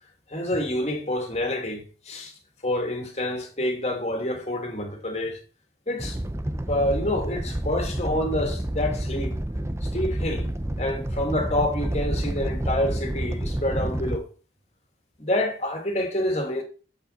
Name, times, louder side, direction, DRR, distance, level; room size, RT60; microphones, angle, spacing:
voice 1, 0.3-2.3 2.6-5.4 5.9-6.2 6.7-9.3 9.8-10.5 10.8-14.3 15.2-16.6, left 1 dB, 35° left, 2.7 m, -27 dB
Animal, 6.0-14.2, right 1 dB, 15° right, 0.6 m, -29 dB
8.8 x 8.3 x 4.3 m
head